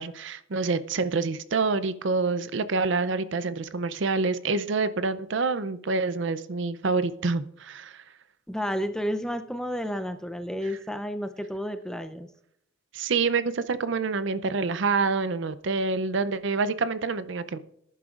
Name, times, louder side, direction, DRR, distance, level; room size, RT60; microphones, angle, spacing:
voice 1, 0.0-8.0 12.9-17.6, right 4 dB, 60° right, 14 dB, 0.5 m, -27 dB
voice 2, 8.5-12.3, equal, 5° left, 8 dB, 0.5 m, -31 dB
20.0 x 11.0 x 2.5 m, 0.77 s
head